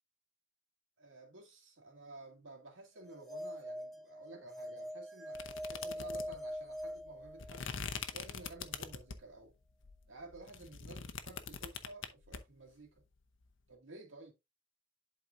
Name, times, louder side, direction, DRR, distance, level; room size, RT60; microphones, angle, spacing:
voice 1, 1.0-7.7 8.1-9.5 10.1-13.0 13.7-14.3, right 2 dB, 80° right, 2.2 m, -53 dB
sound 1, 3.0-7.9, equal, ahead, 0.7 m, -44 dB
sound 2, 5.3-9.4 9.8-12.4, left 6 dB, 70° left, 0.8 m, -43 dB
11.0 x 4.2 x 2.5 m
head